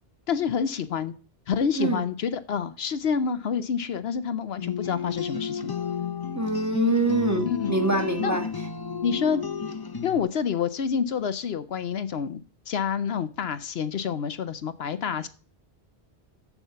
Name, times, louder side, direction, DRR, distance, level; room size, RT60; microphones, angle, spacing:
voice 1, 0.3-1.1 1.5-5.7 7.3-7.8 8.2-8.4 9.0-9.4 10.0-15.3, left 7 dB, 70° left, 0.9 m, -28 dB
sound 1, 4.6-10.2, left 6 dB, 25° left, 0.5 m, -32 dB
voice 2, 6.3-8.4, right 2 dB, 15° right, 1.4 m, -24 dB
7.1 x 7.0 x 6.8 m
omnidirectional pair, 1.1 m